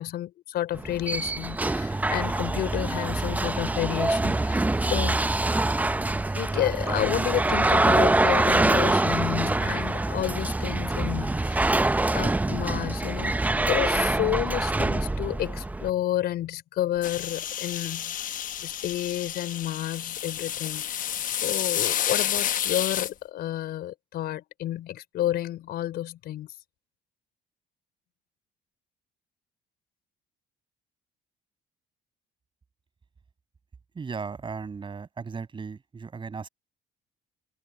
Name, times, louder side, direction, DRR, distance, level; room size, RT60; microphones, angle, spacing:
voice 1, 0.0-5.2 6.3-11.8 12.1-21.1 21.4-26.5, left 13 dB, 70° left, 4.4 m, -31 dB
sound 1, 0.7-15.9, right 2 dB, 10° right, 0.7 m, -25 dB
sound 2, 17.0-23.1, left 10 dB, 55° left, 1.0 m, -30 dB
voice 2, 33.9-36.5, right 5 dB, 30° right, 6.6 m, -36 dB
cardioid pair, 110°, 17 cm